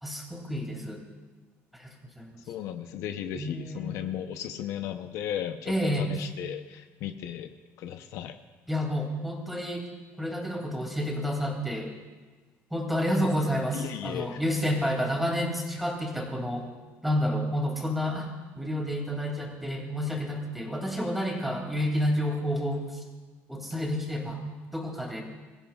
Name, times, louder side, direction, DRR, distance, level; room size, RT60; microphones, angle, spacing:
voice 1, 0.0-1.0 1.8-2.4 3.3-4.1 5.6-6.1 8.7-9.9 10.2-11.9 12.7-16.7 17.0-22.9 23.5-24.4 24.7-25.2, equal, ahead, 0 dB, 2.6 m, -30 dB
voice 2, 2.5-7.5 7.8-8.4 13.7-14.4, left 10 dB, 70° left, 7 dB, 0.8 m, -35 dB
22.0 x 15.5 x 2.4 m, 1.4 s
cardioid pair, 140°, 5 cm